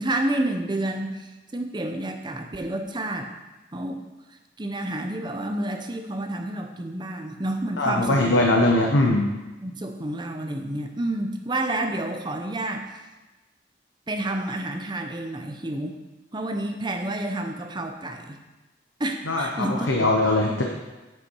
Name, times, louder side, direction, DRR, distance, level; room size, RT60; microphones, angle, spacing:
voice 1, 0.0-3.3 3.7-4.1 4.6-8.2 9.6-12.9 14.1-16.0 16.3-18.4 19.0-20.0, right 1 dB, 25° right, 4 dB, 0.7 m, -29 dB
voice 2, 7.8-9.3 19.3-20.6, left 2 dB, 85° left, 0 dB, 0.9 m, -21 dB
8.0 x 7.0 x 4.6 m, 1.1 s
head